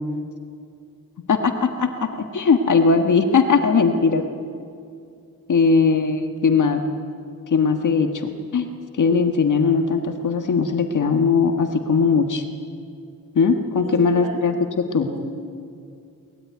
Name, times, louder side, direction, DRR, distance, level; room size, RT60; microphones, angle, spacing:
voice 1, 1.3-4.2 5.5-6.8 7.5-8.7 8.9-12.4 13.3-14.5 14.9-15.1, left 5 dB, 60° left, 5 dB, 1.5 m, -19 dB
voice 2, 13.8-14.4 15.0-15.3, right 1 dB, 80° right, 2 dB, 6.2 m, -35 dB
23.5 x 19.5 x 9.3 m, 2.4 s
wide cardioid pair, 170°, 34 cm